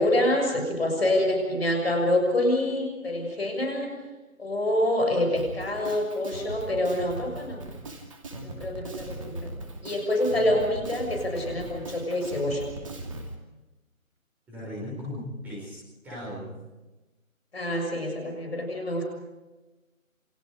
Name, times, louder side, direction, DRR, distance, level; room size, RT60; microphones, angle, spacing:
voice 1, 0.0-3.9 4.4-7.6 8.3-9.5 9.8-12.6 17.5-19.0, left 1 dB, 45° left, 3 dB, 6.7 m, -26 dB
Drum kit, 5.4-13.3, right 2 dB, 25° right, 2.6 m, -39 dB
voice 2, 14.5-15.8 16.0-16.5, left 1 dB, 5° right, -9 dB, 5.8 m, -37 dB
29.0 x 24.5 x 5.1 m, 1.1 s
figure-of-eight pair, 160°, 42 cm